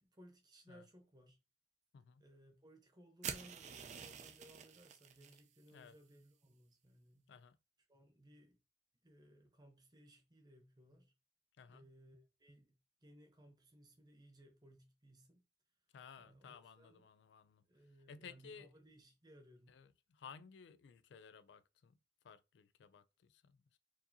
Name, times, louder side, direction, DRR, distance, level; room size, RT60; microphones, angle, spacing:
voice 1, 0.0-1.4 2.2-7.3 7.9-8.6 9.0-11.1 11.7-12.7 13.0-15.5 16.2-17.1 17.6-19.8, right 1 dB, 20° right, 0.9 m, -62 dB
voice 2, 1.9-2.3 5.7-6.0 7.3-7.6 11.6-11.9 15.9-17.6 18.1-18.7 19.7-21.9 22.2-23.8, left 6 dB, 70° left, 0.3 m, -57 dB
sound 1, 3.2-5.4, right 7 dB, 40° right, 0.4 m, -47 dB
4.4 x 2.7 x 2.8 m
head